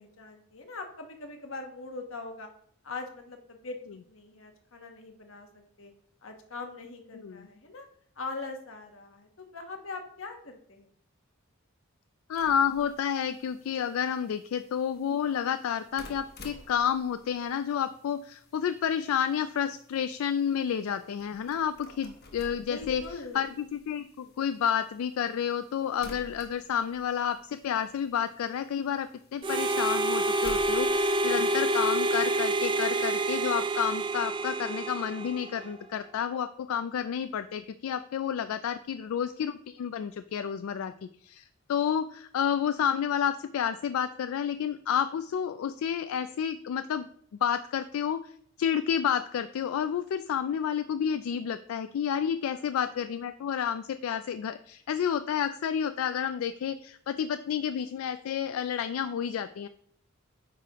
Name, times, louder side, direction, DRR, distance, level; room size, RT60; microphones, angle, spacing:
voice 1, 0.0-2.5 2.8-3.8 4.1-5.9 6.2-7.9 8.2-10.9 22.7-23.4 52.4-52.7, left 3 dB, 70° left, 4 dB, 1.1 m, -41 dB
voice 2, 12.3-23.0 23.3-40.9 41.2-47.1 47.3-48.2 48.6-59.7, left 8 dB, 90° left, 10 dB, 0.3 m, -30 dB
sound 1, 12.3-32.0, left 2 dB, 50° left, 1.0 m, -52 dB
Harmonica, 29.4-35.8, right 2 dB, 25° right, 0.3 m, -28 dB
9.2 x 4.9 x 3.0 m, 0.63 s
head